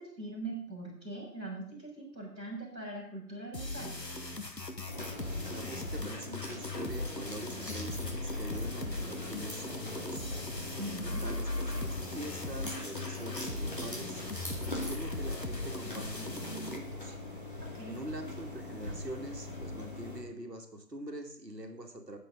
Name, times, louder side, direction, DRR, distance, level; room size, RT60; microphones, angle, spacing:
voice 1, 0.0-4.0 10.8-11.2 17.7-18.0, right 2 dB, ahead, -22 dB, 3.8 m, -41 dB
sound 1, 3.5-16.8, left 2 dB, 75° left, 2.0 m, -38 dB
sound 2, 4.9-20.2, left 2 dB, 30° left, 2.2 m, -42 dB
voice 2, 5.5-10.3 11.0-14.2 14.6-17.2 17.9-22.2, right 1 dB, 75° right, 3 dB, 2.1 m, -44 dB
18.5 x 7.8 x 3.8 m, 0.69 s
figure-of-eight pair, 170°, 50 cm